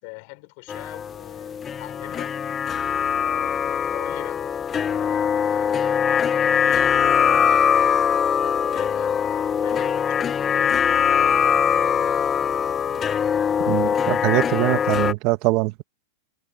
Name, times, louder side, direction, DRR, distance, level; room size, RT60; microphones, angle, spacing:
voice 1, 0.0-2.4 3.1-4.5 4.8-6.1 6.6-11.7, left 31 dB, 40° left, 5.4 m, -42 dB
sound 1, 0.7-15.1, left 7 dB, 15° left, 0.4 m, -22 dB
voice 2, 13.7-15.8, right 21 dB, 35° right, 0.8 m, -22 dB
supercardioid pair, 170°, 0 cm